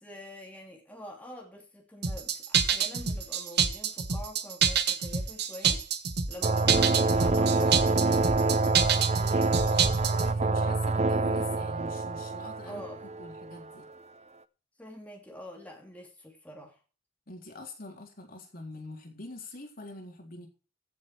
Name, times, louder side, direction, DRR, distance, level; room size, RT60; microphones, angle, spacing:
voice 1, 0.0-5.8 6.3-8.6 9.1-9.5 12.7-13.0 14.8-16.8, left 1 dB, 10° left, 0 dB, 2.8 m, -45 dB
sound 1, 2.0-10.3, right 7 dB, 60° right, 1.5 m, -27 dB
sound 2, 6.4-13.6, right 3 dB, 35° right, 0.6 m, -26 dB
voice 2, 10.1-13.9 17.3-20.5, left 2 dB, 50° left, 2 dB, 3.6 m, -45 dB
15.5 x 7.4 x 4.8 m, 0.36 s
head